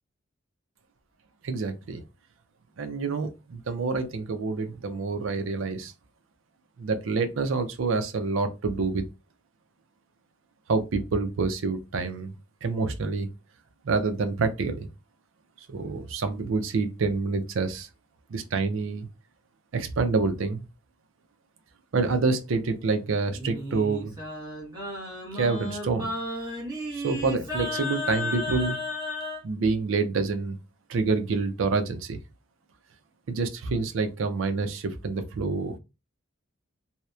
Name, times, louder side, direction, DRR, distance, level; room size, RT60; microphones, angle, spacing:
voice 1, 1.4-2.0 2.8-5.9 6.8-9.0 10.7-12.3 12.6-13.3 13.8-14.9 15.7-17.9 18.3-19.1 19.7-20.7 21.9-24.1 25.3-26.1 26.9-28.8 29.4-30.6 30.9-32.2 33.3-35.8, right 4 dB, 75° right, 0.4 m, -27 dB
Singing, 23.3-29.4, left 1 dB, 20° right, 0.8 m, -33 dB
2.8 x 2.0 x 2.2 m
head